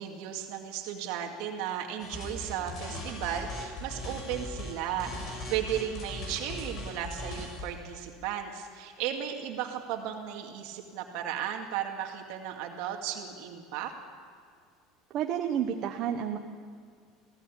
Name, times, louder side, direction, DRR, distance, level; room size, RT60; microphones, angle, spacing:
voice 1, 0.0-13.9, right 9 dB, 70° right, 3 dB, 2.2 m, -35 dB
sound 1, 2.0-4.7 5.0-7.7, left 1 dB, 40° left, 6.5 m, -39 dB
voice 2, 15.1-16.4, right 9 dB, 40° right, 4 dB, 1.1 m, -30 dB
23.0 x 17.0 x 8.5 m, 2.1 s
cardioid pair, 165°, 0 cm